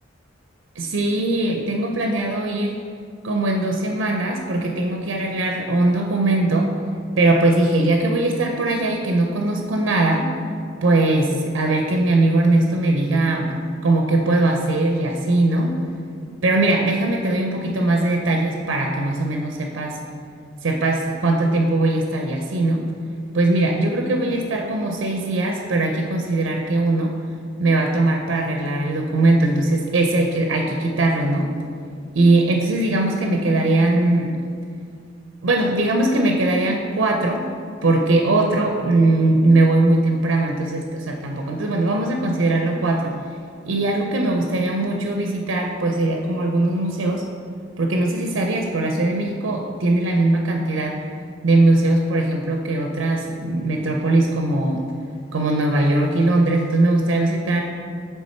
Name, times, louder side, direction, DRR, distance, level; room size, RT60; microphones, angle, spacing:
voice 1, 0.8-2.7 3.2-6.7 7.2-10.3 10.8-13.5 13.8-15.8 16.4-20.0 20.6-22.8 23.3-27.2 27.6-31.5 32.1-34.4 35.4-37.5 37.8-43.2 43.7-47.2 47.8-51.0 51.4-54.8 55.3-57.6, right 2 dB, 70° right, 2 dB, 0.5 m, -20 dB
7.4 x 3.4 x 4.3 m, 2.3 s
head